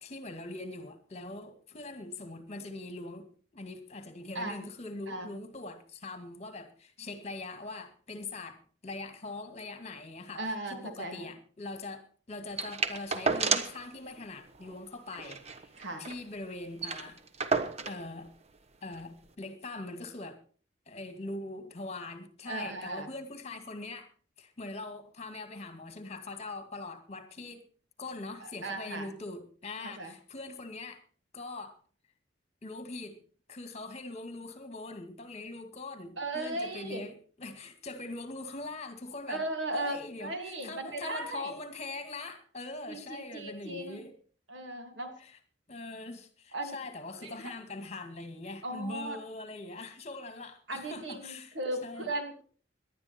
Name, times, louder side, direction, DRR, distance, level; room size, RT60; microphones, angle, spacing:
voice 1, 0.0-10.4 10.7-15.7 16.0-17.2 17.9-18.3 18.8-20.4 20.9-24.1 24.4-27.7 28.0-31.0 31.3-31.8 32.6-33.2 33.5-39.4 39.7-44.1 45.2-45.3 45.7-51.6 51.8-52.1, left 2 dB, 35° left, 2.0 m, -42 dB
voice 2, 10.3-11.3 15.8-16.1 22.5-23.1 28.4-29.1 29.8-30.1 36.2-37.1 39.3-41.5 42.9-44.0 44.5-45.1 46.5-46.8 47.2-47.5 48.6-49.2 50.7-52.4, right 2 dB, 90° right, 2.9 m, -37 dB
sound 1, 12.6-13.9 14.2-14.3 14.5-14.7 15.1-16.2 16.5-16.6 16.8-18.0 18.9-19.0, right 4 dB, 35° right, 1.1 m, -31 dB
18.5 x 11.5 x 4.4 m
head